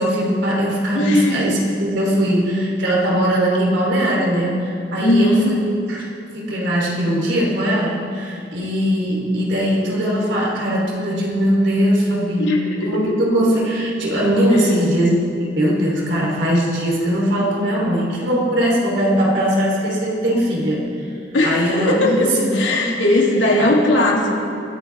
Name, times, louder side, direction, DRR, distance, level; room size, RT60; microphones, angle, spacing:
voice 1, 0.0-5.6 5.9-6.1 6.3-12.6 12.8-20.8 21.4-22.9 23.5-23.8, equal, 75° right, -3 dB, 3.4 m, -20 dB
voice 2, 0.9-1.5 5.0-5.5 12.4-13.2 14.5-14.8 21.3-22.3 22.5-24.4, left 1 dB, 90° left, -2 dB, 2.9 m, -18 dB
23.5 x 14.5 x 3.5 m, 2.5 s
head